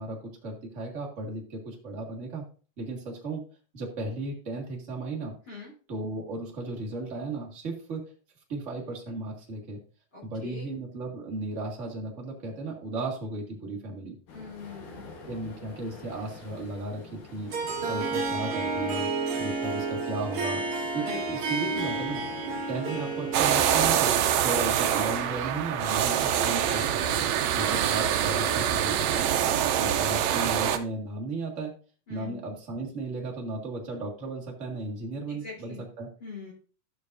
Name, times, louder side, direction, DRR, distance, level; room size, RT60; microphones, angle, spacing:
voice 1, 0.0-2.4 2.8-3.5 3.7-5.3 5.9-8.1 8.5-9.8 10.2-14.2 15.2-20.6 20.9-22.2 22.7-24.1 24.4-27.3 27.5-29.3 29.8-31.7 32.1-36.1, right 2 dB, 30° right, -1 dB, 1.7 m, -35 dB
voice 2, 10.1-10.7 14.3-15.1 20.9-21.2 27.5-27.8 29.6-30.1 32.1-32.4 35.3-35.9 36.2-36.5, left 5 dB, 30° left, -6 dB, 4.0 m, -43 dB
sound 1, 14.3-28.8, left 4 dB, 65° left, 2.7 m, -48 dB
Harp, 17.5-25.9, right 3 dB, 60° right, 2.8 m, -32 dB
sound 2, 23.3-30.8, right 10 dB, 80° right, 1.5 m, -25 dB
14.0 x 6.4 x 2.6 m, 0.38 s
omnidirectional pair, 4.0 m